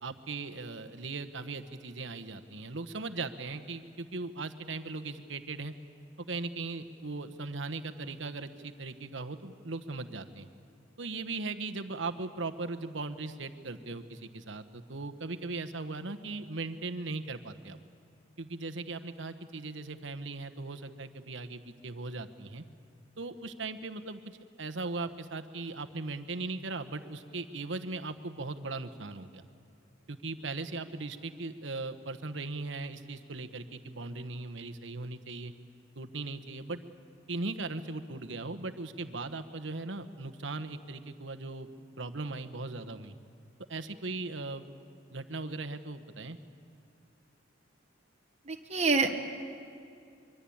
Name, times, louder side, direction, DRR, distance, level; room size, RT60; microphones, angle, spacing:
voice 1, 0.0-5.7 6.2-10.5 11.0-17.8 18.4-22.6 23.2-24.2 24.6-29.4 30.1-35.5 36.0-36.8 37.3-41.7 42.0-43.2 43.7-44.7 45.1-46.4, right 3 dB, 70° right, 8 dB, 1.2 m, -38 dB
voice 2, 48.5-49.1, right 4 dB, 35° right, 3 dB, 1.5 m, -26 dB
25.0 x 23.0 x 8.7 m, 2.5 s
head